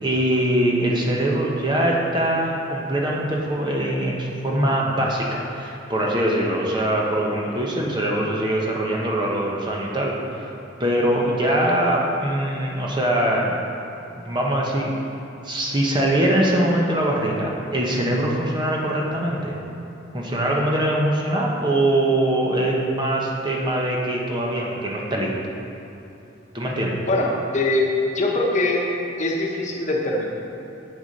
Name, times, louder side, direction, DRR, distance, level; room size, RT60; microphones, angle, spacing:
voice 1, 0.0-10.5 10.8-13.5 14.2-15.0 15.4-19.5 20.1-25.3 26.5-27.0, right 1 dB, 25° right, -2 dB, 1.0 m, -22 dB
voice 2, 27.1-27.9 28.1-28.8 29.2-30.3, left 2 dB, 40° left, -1 dB, 1.1 m, -22 dB
8.1 x 7.0 x 5.3 m, 3.0 s
head